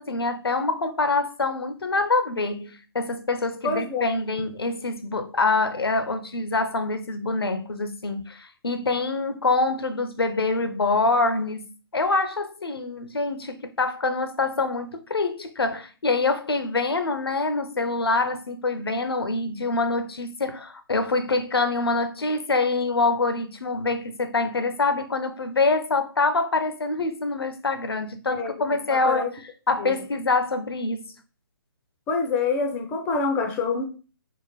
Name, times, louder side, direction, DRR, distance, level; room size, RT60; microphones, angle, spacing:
voice 1, 0.0-29.3 29.7-31.1, left 3 dB, 80° left, 0.5 m, -25 dB
voice 2, 3.6-4.2 28.3-28.5 28.9-29.3 29.8-29.9 32.1-33.8, left 4 dB, 10° left, 0.4 m, -26 dB
3.6 x 2.1 x 2.9 m
figure-of-eight pair, 140°, 13 cm